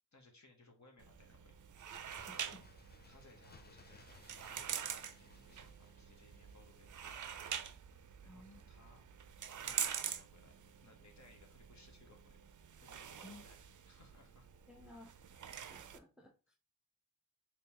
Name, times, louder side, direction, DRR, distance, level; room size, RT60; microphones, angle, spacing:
voice 1, 0.1-1.6 2.3-2.6 3.1-7.6 8.2-9.1 9.6-10.5 10.8-12.4 12.8-13.6 13.9-14.5 15.6-15.7, left 2 dB, 50° left, 1.2 m, -64 dB
sound 1, 1.0-16.0, right 8 dB, 55° right, 0.4 m, -46 dB
Bird, 1.6-7.2 7.5-7.6, left 4 dB, 25° left, 0.4 m, -63 dB
voice 2, 2.3-2.7 8.2-8.6 13.2-13.4 14.7-15.2 15.7-16.7, left 2 dB, ahead, 0.7 m, -57 dB
3.4 x 3.0 x 2.9 m
wide cardioid pair, 50°, 37 cm